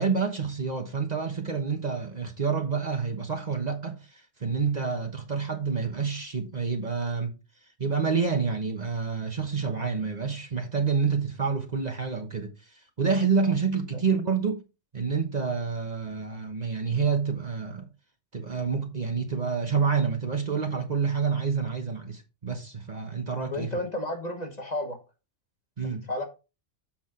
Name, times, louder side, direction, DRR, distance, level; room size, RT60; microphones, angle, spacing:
voice 1, 0.0-7.4 7.8-14.6 14.9-17.9 18.3-23.8 25.8-26.0, right 5 dB, 40° right, 1.2 m, -28 dB
voice 2, 23.5-25.0 26.1-26.2, left 1 dB, 35° left, 1.6 m, -32 dB
7.5 x 6.2 x 3.7 m
omnidirectional pair, 1.2 m